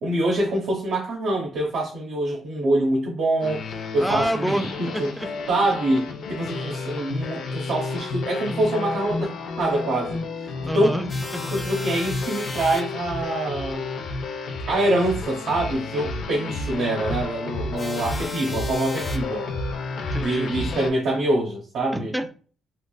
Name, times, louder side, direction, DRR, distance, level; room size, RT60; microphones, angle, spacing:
voice 1, 0.0-3.7 3.9-5.1 5.5-11.0 11.5-13.8 14.7-19.4 20.2-22.1, right 1 dB, 80° right, 0.9 m, -25 dB
sound 1, 3.4-20.9, left 3 dB, 75° left, 0.5 m, -31 dB
voice 2, 4.0-5.3 10.7-11.5 20.0-20.5 21.9-22.3, equal, 5° right, 0.5 m, -28 dB
sound 2, 11.1-12.8 17.8-19.2, left 2 dB, 20° left, 0.9 m, -36 dB
3.2 x 2.6 x 2.3 m
cardioid pair, 90°, 0 cm